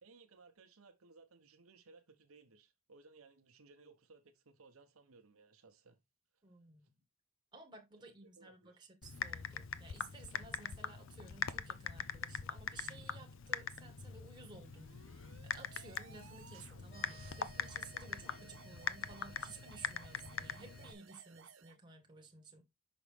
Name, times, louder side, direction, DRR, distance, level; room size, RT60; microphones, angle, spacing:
voice 1, 0.0-6.0 8.2-8.8, right 4 dB, 80° right, 1.0 m, -62 dB
voice 2, 6.4-6.8 7.5-15.0 15.4-22.6, right 3 dB, 20° right, 1.4 m, -55 dB
Typing, 9.0-20.9, left 7 dB, 65° left, 0.5 m, -43 dB
sound 1, 14.6-21.8, right 6 dB, 60° right, 0.6 m, -60 dB
sound 2, 16.9-21.0, right 2 dB, 45° left, 3.1 m, -60 dB
6.0 x 5.1 x 3.4 m
head